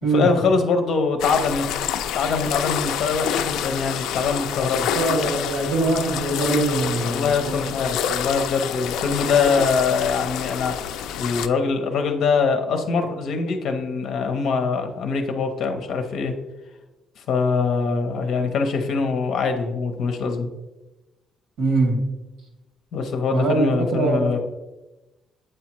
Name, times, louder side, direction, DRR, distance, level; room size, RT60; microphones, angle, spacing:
voice 1, 0.1-1.7 2.1-4.9 7.0-10.9 11.2-16.3 17.3-20.5 22.9-24.4, left 5 dB, 55° left, 6 dB, 0.8 m, -23 dB
sound 1, 1.2-11.5, left 9 dB, 85° left, 0.3 m, -28 dB
voice 2, 4.9-7.7 21.6-22.0 23.3-24.4, right 2 dB, 65° right, 0 dB, 2.1 m, -22 dB
8.0 x 4.8 x 3.1 m, 1.1 s
cardioid pair, 165°, 0 cm